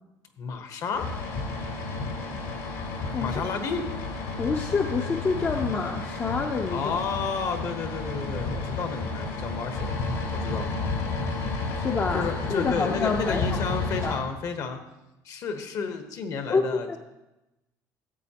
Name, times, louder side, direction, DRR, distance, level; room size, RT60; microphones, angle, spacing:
voice 1, 0.4-1.1 3.2-3.8 6.7-9.9 10.3-10.7 12.1-14.8 15.2-17.0, left 5 dB, 50° left, 7 dB, 1.0 m, -31 dB
sound 1, 0.9-14.2, left 3 dB, 75° left, 2.3 m, -31 dB
voice 2, 4.4-6.8 11.7-13.6 14.0-14.2 16.5-17.0, left 4 dB, 25° left, 3 dB, 0.5 m, -27 dB
13.5 x 7.8 x 2.9 m, 0.97 s
cardioid pair, 130°, 7 cm